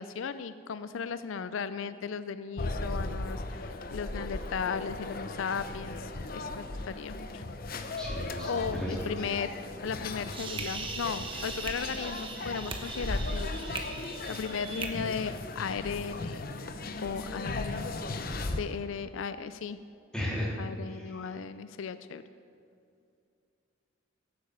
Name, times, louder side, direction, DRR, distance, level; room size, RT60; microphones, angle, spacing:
voice 1, 0.0-7.4 8.4-9.5 9.8-13.5 14.3-16.4 17.0-17.9 18.6-19.8 20.6-22.2, left 6 dB, 75° left, 13 dB, 0.4 m, -36 dB
sound 1, 2.6-18.6, left 2 dB, 45° left, 0.8 m, -37 dB
voice 2, 8.0-9.0 20.1-20.5, left 1 dB, 5° left, -6 dB, 3.5 m, -34 dB
sound 2, 9.9-14.9, right 4 dB, 25° right, 1.1 m, -40 dB
15.5 x 8.8 x 6.7 m, 2.5 s
head